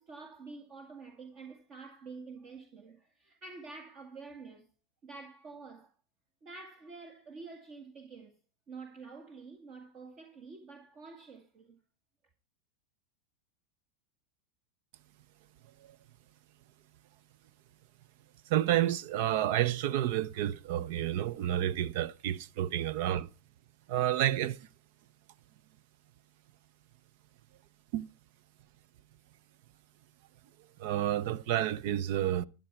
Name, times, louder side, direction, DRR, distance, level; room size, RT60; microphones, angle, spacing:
voice 1, 0.0-4.7 5.0-5.9 6.4-8.4 8.7-11.8, right 4 dB, 40° right, 1.9 m, -48 dB
voice 2, 18.5-23.3 23.9-24.6 27.9-28.0 30.8-32.4, right 12 dB, 60° right, 0.6 m, -30 dB
12.5 x 9.5 x 4.6 m
hypercardioid pair, 95°, 0 cm